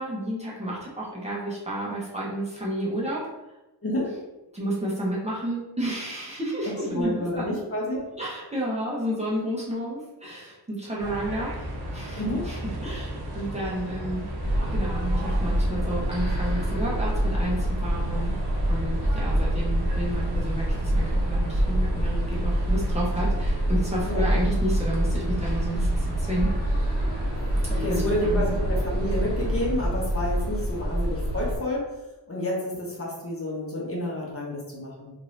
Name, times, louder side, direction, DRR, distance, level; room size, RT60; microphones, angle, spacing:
voice 1, 0.0-3.3 4.5-7.6 8.0-14.3 14.7-18.3 18.7-26.5 27.6-28.4, right 1 dB, 15° right, -6 dB, 0.8 m, -31 dB
voice 2, 3.8-4.1 6.9-8.0 12.2-12.4 24.1-24.3 27.3-31.9 32.3-35.1, left 1 dB, 35° left, -4 dB, 0.9 m, -29 dB
sound 1, 11.0-29.7, right 1 dB, 65° right, 0.7 m, -35 dB
sound 2, 14.4-31.6, right 1 dB, 45° right, 1.2 m, -26 dB
2.6 x 2.5 x 3.1 m, 0.98 s
wide cardioid pair, 100°, 41 cm